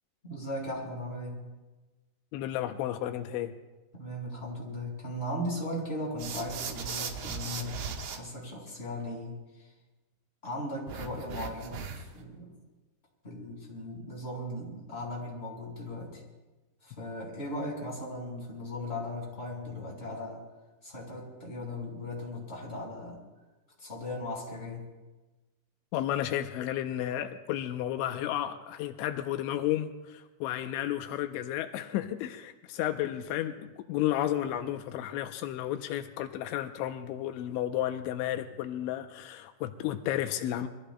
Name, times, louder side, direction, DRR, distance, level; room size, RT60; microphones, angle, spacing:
voice 1, 0.2-1.5 3.9-9.7 10.4-12.5 13.2-16.2 16.8-20.4 20.8-23.2 23.8-24.8, left 1 dB, 15° left, -3 dB, 4.9 m, -38 dB
voice 2, 2.3-3.5 25.9-40.7, left 12 dB, 85° left, 7 dB, 3.0 m, -32 dB
sound 1, 6.2-8.2 10.9-12.2, right 6 dB, 65° right, 2.9 m, -38 dB
29.0 x 22.5 x 2.2 m, 1.2 s
omnidirectional pair, 5.2 m